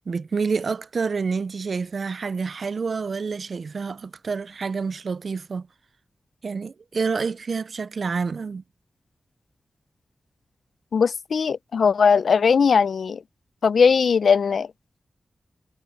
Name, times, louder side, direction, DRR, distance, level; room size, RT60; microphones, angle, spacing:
voice 1, 0.1-5.7 6.4-8.6, right 5 dB, 65° right, 0.3 m, -28 dB
voice 2, 10.9-13.2 13.6-14.7, left 6 dB, 85° left, 0.4 m, -19 dB
wide cardioid pair, 115°, 0 cm